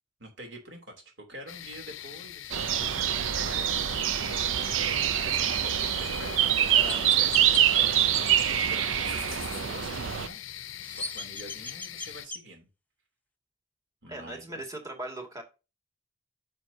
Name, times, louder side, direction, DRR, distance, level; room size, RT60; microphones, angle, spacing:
voice 1, 0.2-4.0 5.1-12.7 14.0-14.6, equal, 65° right, 3 dB, 3.1 m, -46 dB
sound 1, 1.5-12.3, left 12 dB, 85° left, 0.5 m, -42 dB
sound 2, 2.5-10.3, right 10 dB, 80° right, 0.5 m, -25 dB
Chirp tweet, 6.0-6.1 6.9-7.6 10.6-12.4, left 3 dB, 10° left, 0.6 m, -38 dB
voice 2, 6.7-7.0 14.1-15.4, right 1 dB, 15° right, 3 dB, 2.2 m, -39 dB
9.5 x 7.2 x 2.8 m, 0.29 s
head